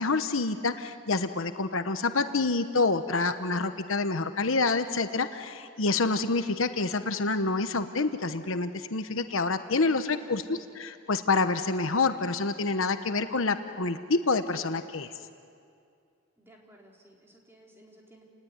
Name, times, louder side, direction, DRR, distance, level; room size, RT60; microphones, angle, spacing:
voice 1, 0.0-15.1, left 3 dB, 75° left, 9 dB, 1.1 m, -27 dB
voice 2, 9.6-10.4 16.4-18.2, right 1 dB, 10° right, -2 dB, 4.4 m, -56 dB
29.5 x 19.5 x 9.7 m, 2.3 s
head